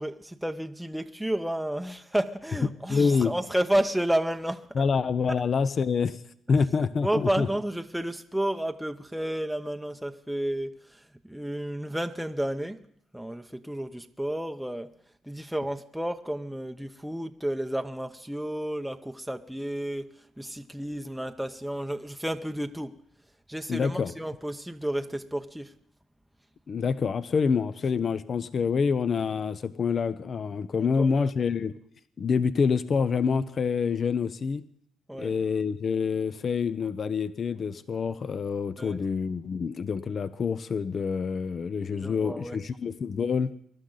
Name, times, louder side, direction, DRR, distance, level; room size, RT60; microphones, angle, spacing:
voice 1, 0.0-4.8 5.3-5.4 7.0-12.8 13.1-14.9 15.2-23.0 23.5-25.7 30.8-31.3 35.1-35.3 38.8-39.0 42.0-42.6, right 1 dB, 5° right, 0.7 m, -31 dB
voice 2, 2.9-3.3 4.8-6.2 6.5-7.5 23.7-24.1 26.7-31.7 32.2-34.6 35.2-43.5, left 5 dB, 45° left, 0.6 m, -27 dB
22.5 x 11.5 x 3.9 m
cardioid pair, 90°, 0 cm